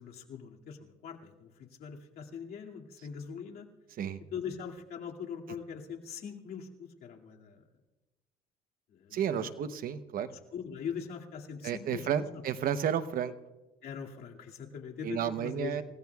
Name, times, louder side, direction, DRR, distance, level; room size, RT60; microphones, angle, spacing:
voice 1, 0.0-3.7 4.3-7.6 8.9-9.5 10.5-12.4 13.8-15.8, left 7 dB, 65° left, -1 dB, 2.3 m, -42 dB
voice 2, 9.1-10.4 11.6-13.3 15.0-15.8, right 8 dB, 60° right, 11 dB, 0.9 m, -32 dB
29.0 x 17.0 x 2.3 m, 1.1 s
cardioid pair, 110°, 17 cm